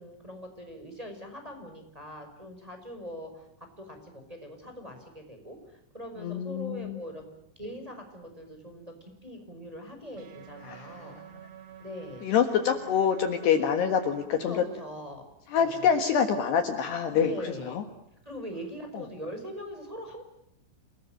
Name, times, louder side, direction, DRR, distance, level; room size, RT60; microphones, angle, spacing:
voice 1, 0.0-3.5 3.8-7.3 7.5-11.2 11.8-12.2 14.4-15.3 15.6-16.0 17.1-17.8 18.2-20.2, equal, 5° right, 4 dB, 4.8 m, -41 dB
voice 2, 6.2-7.0 10.7-11.1 12.2-14.6 15.5-17.8 18.9-19.0, left 7 dB, 65° left, 6 dB, 3.3 m, -26 dB
sound 1, 10.2-14.3, right 10 dB, 70° right, 4.9 m, -48 dB
29.5 x 20.5 x 9.0 m, 0.77 s
omnidirectional pair, 5.8 m